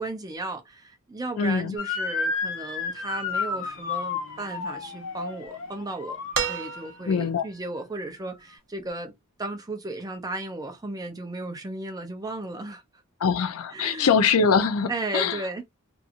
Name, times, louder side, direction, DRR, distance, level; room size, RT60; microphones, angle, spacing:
voice 1, 0.0-9.1 9.4-12.8 13.7-14.1 14.9-15.6, right 2 dB, 20° right, 0.5 m, -35 dB
voice 2, 1.4-1.8 7.1-7.4 13.2-15.4, left 5 dB, 85° left, 0.5 m, -23 dB
Motor vehicle (road) / Siren, 1.8-7.0, left 4 dB, 65° left, 0.9 m, -32 dB
sound 1, 6.3-7.4 8.9-9.0, right 7 dB, 60° right, 0.6 m, -30 dB
2.7 x 2.5 x 2.5 m
head